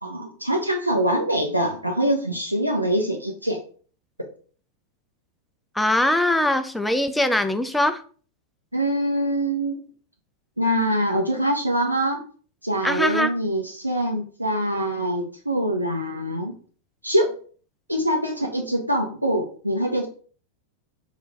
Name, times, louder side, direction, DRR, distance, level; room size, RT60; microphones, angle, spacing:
voice 1, 0.0-3.6 8.7-9.8 10.6-12.2 12.6-16.5 17.0-17.3 17.9-20.1, right 1 dB, 85° right, 2 dB, 0.4 m, -24 dB
voice 2, 5.8-8.0 12.8-13.3, left 1 dB, 5° left, 9 dB, 0.3 m, -21 dB
3.0 x 2.3 x 3.3 m, 0.43 s
figure-of-eight pair, 90°, 0 cm